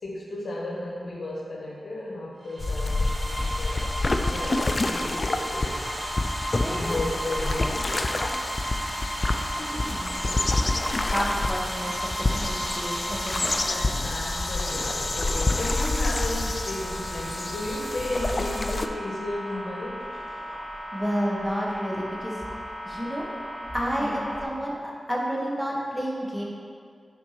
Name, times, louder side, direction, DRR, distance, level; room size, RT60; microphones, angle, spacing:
voice 1, 0.0-3.9 4.3-5.8 6.7-8.2 9.3-10.0 13.6-20.1 23.9-24.3, left 1 dB, 80° left, -3 dB, 1.3 m, -34 dB
sound 1, 2.4-14.3, right 1 dB, 45° right, 1.2 m, -35 dB
sound 2, 2.6-18.9, left 2 dB, 45° left, 0.4 m, -28 dB
sound 3, 5.4-24.5, equal, 15° left, 1.7 m, -38 dB
voice 2, 6.6-7.0 9.7-10.3 11.1-13.5 20.9-22.4 22.8-23.3 23.7-26.4, equal, 5° right, -4 dB, 1.5 m, -30 dB
6.1 x 4.4 x 5.9 m, 2.3 s
wide cardioid pair, 70°, 0 cm